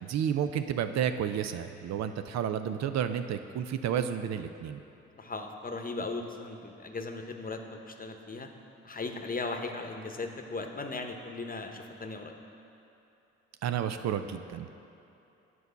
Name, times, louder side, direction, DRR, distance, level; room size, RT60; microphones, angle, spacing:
voice 1, 0.0-4.8 13.6-14.7, right 9 dB, 65° right, 9 dB, 0.5 m, -31 dB
voice 2, 5.2-8.5 8.8-12.3, left 3 dB, 30° left, 4 dB, 0.9 m, -37 dB
8.0 x 4.7 x 6.7 m, 2.8 s
supercardioid pair, 50°, 29 cm